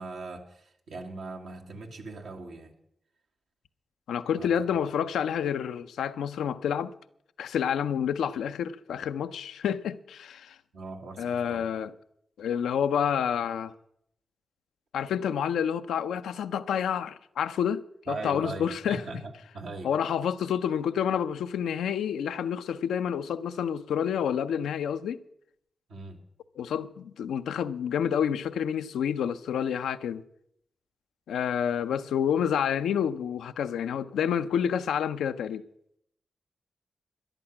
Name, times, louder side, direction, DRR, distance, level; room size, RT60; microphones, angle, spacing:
voice 1, 0.0-2.7 4.3-4.5 10.7-11.7 18.1-19.9 25.9-26.2, right 3 dB, 80° right, 1.5 m, -40 dB
voice 2, 4.1-6.9 7.4-10.6 11.2-11.9 12.4-13.7 14.9-19.0 19.8-25.2 26.6-30.2 31.3-35.6, left 8 dB, 90° left, 0.5 m, -29 dB
13.0 x 10.5 x 5.9 m
supercardioid pair, 40°, 0 cm